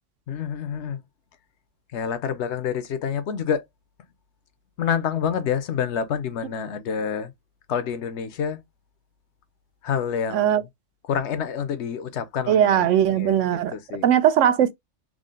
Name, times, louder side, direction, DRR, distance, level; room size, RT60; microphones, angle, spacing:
voice 1, 0.3-1.0 1.9-3.6 4.8-7.3 7.7-8.6 9.8-10.6 11.1-12.9 13.1-13.4 13.7-14.0, left 7 dB, 70° left, 0.8 m, -27 dB
voice 2, 10.3-10.6 12.5-13.7 14.0-14.7, right 10 dB, 80° right, 0.9 m, -19 dB
3.6 x 2.1 x 3.6 m
omnidirectional pair, 1.3 m